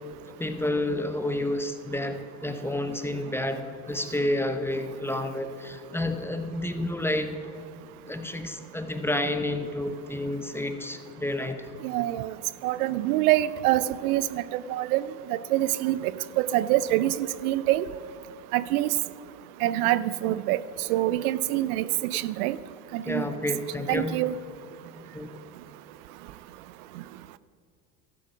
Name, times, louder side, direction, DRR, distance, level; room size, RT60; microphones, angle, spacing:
voice 1, 0.4-7.4 8.1-11.7 20.2-20.4 23.0-24.2 24.9-25.3, left 1 dB, 5° left, 7 dB, 0.9 m, -30 dB
voice 2, 11.8-12.3 12.6-15.0 15.3-16.1 16.4-17.9 18.5-18.9 19.6-20.6 20.9-22.6 22.9-23.3 23.9-24.3, right 15 dB, 85° right, 17 dB, 0.5 m, -25 dB
12.5 x 7.0 x 6.1 m, 2.4 s
supercardioid pair, 85°, 43 cm